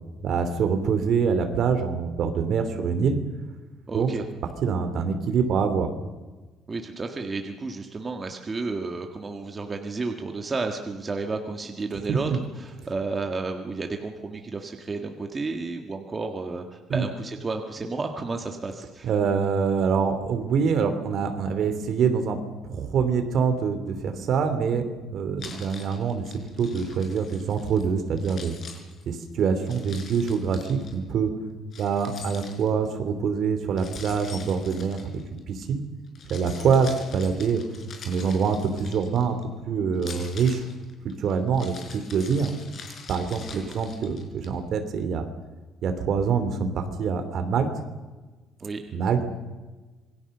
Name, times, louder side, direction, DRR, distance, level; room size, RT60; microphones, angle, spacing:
voice 1, 0.2-3.2 3.9-4.1 4.6-5.9 12.1-12.4 16.9-17.1 19.0-22.4 22.6-24.8 25.1-26.2 26.6-28.5 29.0-31.3 31.8-35.0 35.5-35.8 36.3-37.6 38.0-39.4 39.7-40.6 41.0-42.5 43.1-45.3 45.8-47.7 48.9-49.2, right 6 dB, 50° right, 8 dB, 3.0 m, -25 dB
voice 2, 3.9-4.2 6.7-12.3 12.6-19.1 43.5-43.8 48.6-48.8, right 3 dB, 20° right, 4 dB, 1.7 m, -32 dB
Keys jangling, 25.4-27.8 28.2-30.9 31.7-32.9 33.8-35.6 36.1-39.4 39.9-44.5, left 5 dB, 40° left, 5.2 m, -44 dB
27.0 x 22.5 x 6.7 m, 1.3 s
cardioid pair, 165°, 0 cm